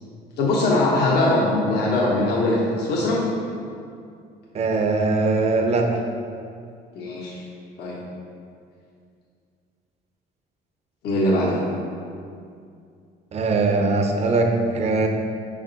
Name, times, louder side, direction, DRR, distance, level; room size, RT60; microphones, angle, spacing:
voice 1, 0.4-3.2 6.9-7.3 7.8-8.0 11.0-11.6, left 2 dB, 75° left, -5 dB, 1.0 m, -21 dB
voice 2, 4.5-6.0 13.3-15.1, right 3 dB, 40° right, 3 dB, 0.7 m, -21 dB
5.4 x 5.0 x 3.9 m, 2.3 s
cardioid pair, 110°, 17 cm